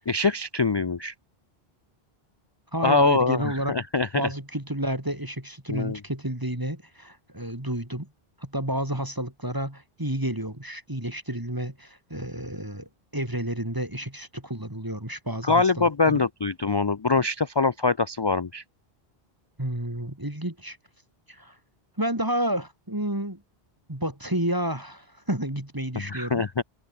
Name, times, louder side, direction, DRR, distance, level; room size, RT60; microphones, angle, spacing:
voice 1, 0.1-1.1 2.8-4.2 5.7-6.0 15.4-18.6 26.0-26.6, left 4 dB, 35° left, 0.5 m, -23 dB
voice 2, 2.7-3.7 4.1-8.1 8.4-16.2 19.6-20.8 21.3-21.6 22.0-23.4 23.9-26.4, right 1 dB, 20° right, 2.9 m, -30 dB
omnidirectional pair, 1.0 m